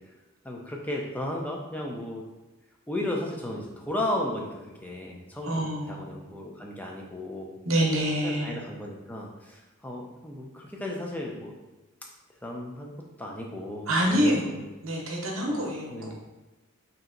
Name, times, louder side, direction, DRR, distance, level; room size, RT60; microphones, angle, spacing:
voice 1, 0.4-2.2 2.9-5.5 5.9-7.6 8.2-11.5 12.4-12.9 13.2-14.6 15.5-16.2, left 1 dB, 5° left, -1 dB, 0.4 m, -34 dB
voice 2, 5.4-6.0 7.6-8.6 13.9-16.2, equal, 70° right, 0 dB, 0.8 m, -26 dB
3.3 x 2.9 x 3.7 m, 1.1 s
head